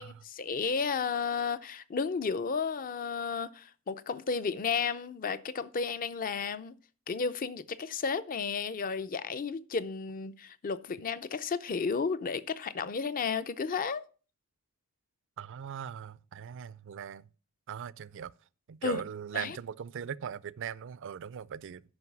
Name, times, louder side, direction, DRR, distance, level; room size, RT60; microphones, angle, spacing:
voice 1, 0.0-6.8 7.1-14.0 18.8-19.0 19.3-19.6, left 5 dB, 40° left, 0.5 m, -33 dB
voice 2, 15.4-17.3 17.7-18.3 18.7-21.8, right 8 dB, 60° right, 0.4 m, -39 dB
9.6 x 5.5 x 5.9 m
head